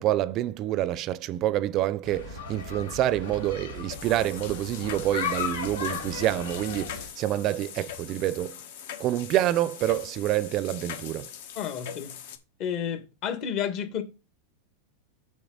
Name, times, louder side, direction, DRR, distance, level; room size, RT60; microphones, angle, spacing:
voice 1, 0.0-8.6 9.0-11.3, right 13 dB, 40° right, 0.4 m, -27 dB
sound 1, 2.0-7.1, left 5 dB, 90° left, 3.8 m, -36 dB
sound 2, 3.9-12.4, left 9 dB, 70° left, 1.4 m, -42 dB
voice 2, 11.6-12.2 12.6-14.0, left 8 dB, 50° left, 1.7 m, -31 dB
7.1 x 6.4 x 4.0 m
hypercardioid pair, 125°, 0 cm